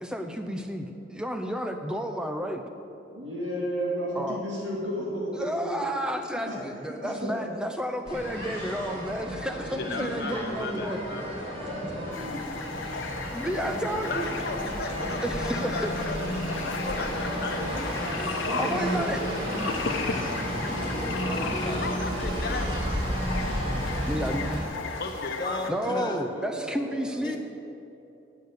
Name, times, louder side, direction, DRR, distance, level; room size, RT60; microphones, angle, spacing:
voice 1, 0.0-2.6 4.2-4.4 5.4-11.0 13.3-14.3 15.2-15.9 18.6-19.2 24.0-24.7 25.7-27.4, equal, 5° right, 5 dB, 0.6 m, -31 dB
voice 2, 3.1-5.9 6.5-7.4 9.5-12.4 13.5-14.1 18.4-19.8 25.7-26.0 26.3-27.4, equal, 75° right, -4 dB, 2.3 m, -35 dB
sound 1, 8.0-24.6, equal, 30° right, 2.6 m, -32 dB
voice 3, 9.8-11.4 12.9-13.4 14.1-18.0 21.8-22.8 25.0-25.6, left 3 dB, 55° left, 4 dB, 1.0 m, -36 dB
sound 2, 12.1-25.7, left 4 dB, 90° left, 1.0 m, -35 dB
voice 4, 21.1-21.9 25.4-26.3 27.2-27.4, left 2 dB, 20° left, 2 dB, 1.0 m, -35 dB
8.8 x 8.2 x 8.1 m, 2.7 s
head